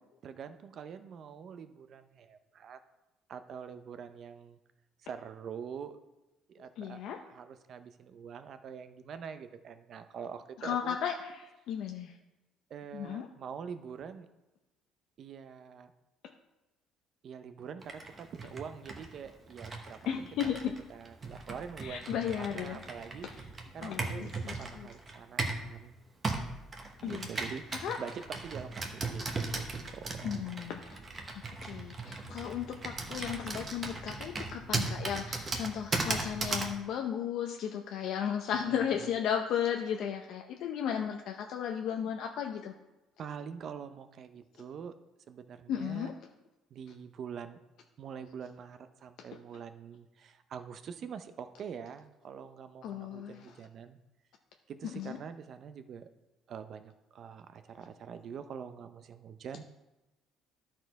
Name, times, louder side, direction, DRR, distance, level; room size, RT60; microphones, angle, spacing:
voice 1, 0.2-2.8 3.3-4.6 5.0-6.0 6.5-7.0 7.3-11.0 12.7-14.3 15.2-15.9 17.2-20.3 20.9-22.0 22.4-23.3 23.7-26.0 27.0-30.4 38.5-39.1 43.2-45.0 45.3-46.1 46.7-47.6 48.0-54.0 54.7-56.1 56.5-59.6, right 7 dB, 40° right, 10 dB, 0.5 m, -45 dB
voice 2, 6.8-7.2 10.6-12.2 12.9-13.3 20.1-20.7 21.8-22.8 23.2-23.4 23.8-24.9 27.0-28.0 30.2-31.0 31.6-42.7 44.6-44.7 45.7-46.1 52.8-53.5 54.9-55.2, left 8 dB, 60° left, 3 dB, 0.6 m, -35 dB
Computer keyboard, 17.8-25.7 26.2-36.8, right 3 dB, 25° right, 1.0 m, -37 dB
12.0 x 4.4 x 4.6 m, 1.0 s
cardioid pair, 160°, 0 cm